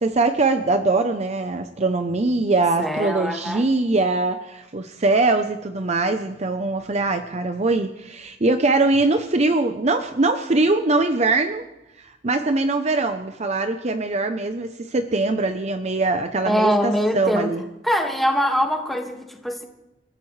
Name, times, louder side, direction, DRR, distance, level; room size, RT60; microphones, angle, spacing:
voice 1, 0.0-11.6 12.0-17.6, right 3 dB, 35° right, 7 dB, 0.7 m, -22 dB
voice 2, 2.8-3.7 16.5-17.5 17.8-19.6, equal, ahead, 2 dB, 1.8 m, -23 dB
28.5 x 14.5 x 3.3 m, 0.96 s
head